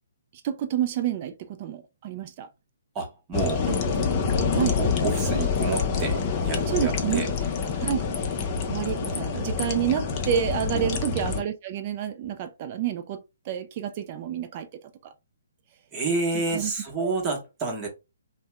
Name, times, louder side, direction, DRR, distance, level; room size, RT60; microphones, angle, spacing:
voice 1, 0.4-2.5 3.7-4.1 4.5-4.8 6.7-7.3 7.8-8.0 8.7-13.2 13.5-14.7 15.0-15.1 16.5-17.1, right 10 dB, 35° right, 0.4 m, -29 dB
voice 2, 2.9-3.7 4.8-7.3 10.7-10.9 15.9-17.9, right 3 dB, 20° right, 1.0 m, -29 dB
sound 1, 3.3-11.4, left 5 dB, 30° left, 0.6 m, -26 dB
2.7 x 2.1 x 3.3 m
figure-of-eight pair, 135°, 0 cm